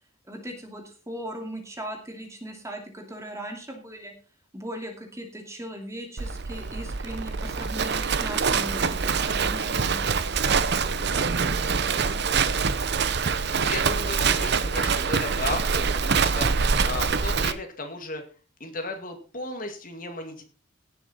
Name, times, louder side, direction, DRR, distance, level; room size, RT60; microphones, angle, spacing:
voice 1, 0.3-4.1 4.5-10.2 10.4-12.4, equal, 15° right, 3 dB, 2.5 m, -39 dB
Livestock farm animals working animals, 6.2-17.5, right 5 dB, 55° right, 0.7 m, -25 dB
voice 2, 13.5-18.2 18.6-20.4, left 2 dB, 40° left, 5 dB, 2.3 m, -35 dB
17.5 x 7.1 x 4.2 m, 0.36 s
head